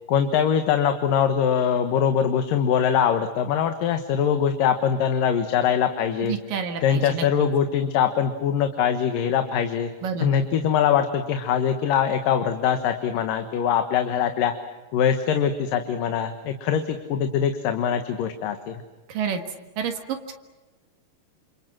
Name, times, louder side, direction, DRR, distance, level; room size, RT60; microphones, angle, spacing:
voice 1, 0.1-6.4 6.8-9.9 10.2-14.5 14.9-18.8, left 8 dB, 85° left, 7 dB, 3.1 m, -22 dB
voice 2, 6.3-7.2 10.0-10.4 19.1-19.4 19.8-20.0 20.3-20.4, right 7 dB, 80° right, 5 dB, 3.4 m, -29 dB
30.0 x 28.0 x 6.1 m, 1.2 s
omnidirectional pair, 3.8 m